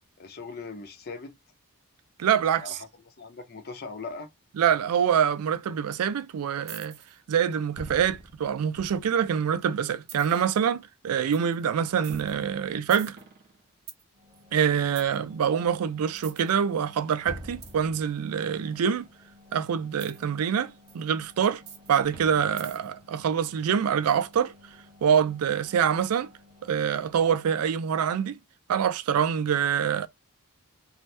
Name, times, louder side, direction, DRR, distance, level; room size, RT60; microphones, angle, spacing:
voice 1, 0.2-1.4 2.6-4.3, left 4 dB, 45° left, 0.6 m, -40 dB
voice 2, 2.2-2.8 4.6-7.0 7.3-13.2 14.5-19.1 19.5-21.6 21.9-24.5 25.0-26.3 26.6-28.4 28.7-30.1, right 8 dB, 75° right, 0.4 m, -25 dB
sound 1, 6.7-7.2 7.8-9.3 10.1-10.5 11.3-11.6 12.0-14.0 15.0-15.2 16.2-16.5 17.3-18.4 20.0-20.2 20.9-21.0 21.7-23.0, right 3 dB, 45° right, 0.8 m, -44 dB
sound 2, 14.1-27.7, left 2 dB, 20° right, 1.0 m, -56 dB
2.8 x 2.0 x 3.3 m
head